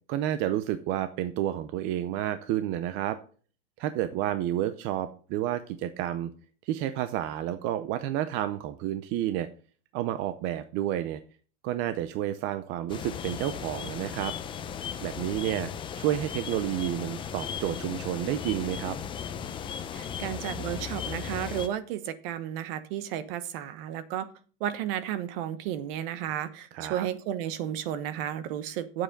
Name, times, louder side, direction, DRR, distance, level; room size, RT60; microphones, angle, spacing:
voice 1, 0.1-3.2 3.8-6.3 6.6-9.5 9.9-11.2 11.6-14.3 15.0-19.0 26.7-27.1, right 12 dB, 35° right, 12 dB, 0.6 m, -30 dB
sound 1, 12.9-21.7, left 8 dB, 15° left, 0.5 m, -36 dB
voice 2, 19.9-24.3 24.6-29.0, right 11 dB, 50° right, 13 dB, 1.2 m, -33 dB
9.0 x 7.5 x 5.3 m, 0.40 s
supercardioid pair, 150°, 35 cm